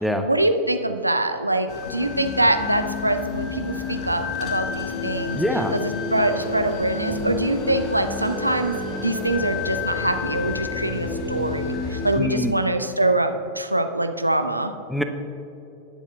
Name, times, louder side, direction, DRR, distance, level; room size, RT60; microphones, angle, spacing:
voice 1, 0.2-5.4 5.7-8.7 9.0-14.7, right 1 dB, 85° right, 8 dB, 0.6 m, -24 dB
sound 1, 1.7-12.2, left 4 dB, 40° left, 1.1 m, -30 dB
voice 2, 5.3-5.7 12.2-12.5 14.9-15.0, equal, ahead, 7 dB, 0.6 m, -23 dB
18.5 x 7.2 x 2.4 m, 2.8 s
figure-of-eight pair, 90°, 0 cm